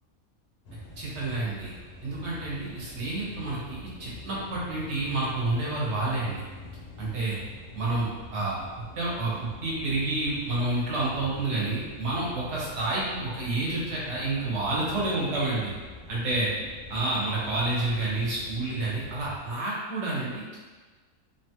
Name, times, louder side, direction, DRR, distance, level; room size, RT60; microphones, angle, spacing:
sound 1, 0.6-19.6, left 2 dB, 90° left, 1.1 m, -45 dB
voice 1, 1.0-1.7 2.0-6.4 7.0-7.4 7.7-8.6 9.0-15.7 16.1-16.5 16.9-20.6, right 2 dB, 60° right, -6 dB, 1.0 m, -29 dB
2.8 x 2.3 x 2.8 m, 1.4 s
omnidirectional pair, 1.5 m